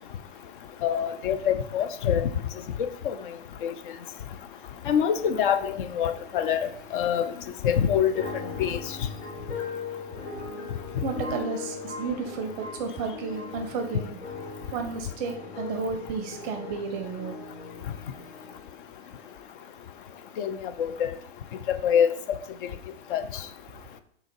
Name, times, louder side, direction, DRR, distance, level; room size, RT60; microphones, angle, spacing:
voice 1, 0.8-2.3 2.8-3.1 3.6-3.7 4.9-6.7 6.9-7.3 7.6-8.1 8.6-8.8 20.4-21.1 21.7-22.1 23.1-23.2, left 8 dB, 50° left, 10 dB, 0.5 m, -25 dB
sound 1, 5.1-18.9 19.2-19.4, left 4 dB, 80° left, 1.3 m, -40 dB
voice 2, 11.0-14.2 14.7-17.4, right 5 dB, 25° right, 5 dB, 0.5 m, -32 dB
3.7 x 2.9 x 4.5 m, 0.67 s
hypercardioid pair, 120°, 32 cm